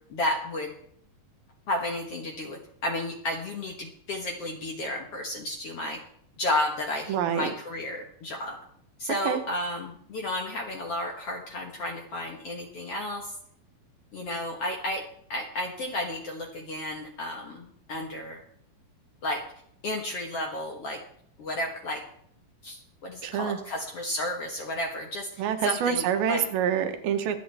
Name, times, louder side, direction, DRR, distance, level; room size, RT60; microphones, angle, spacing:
voice 1, 0.1-0.7 1.7-6.0 6.4-8.6 9.0-13.3 14.1-15.0 15.3-18.4 19.2-19.4 19.8-21.0 21.4-22.0 22.6-26.4, left 1 dB, 60° left, 2 dB, 1.7 m, -32 dB
voice 2, 7.1-7.5 9.3-9.4 23.2-23.6 25.4-27.4, right 8 dB, 80° right, 7 dB, 2.9 m, -26 dB
24.0 x 8.5 x 3.4 m, 0.66 s
omnidirectional pair, 4.2 m